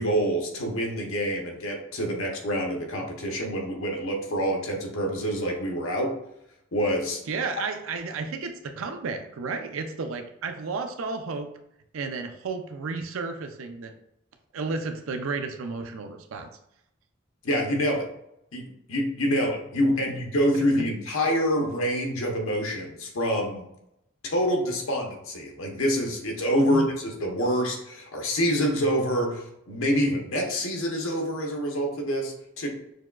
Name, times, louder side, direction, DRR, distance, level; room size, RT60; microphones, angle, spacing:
voice 1, 0.0-6.1 6.7-7.2 17.4-18.0 18.5-18.6 18.9-23.7 24.2-32.7, equal, 90° left, 1 dB, 1.0 m, -26 dB
voice 2, 7.3-11.5 11.9-13.9 14.5-16.5 19.3-19.4 21.6-21.7 26.6-26.9, right 4 dB, 90° right, 6 dB, 0.5 m, -32 dB
6.3 x 2.3 x 2.4 m, 0.79 s
head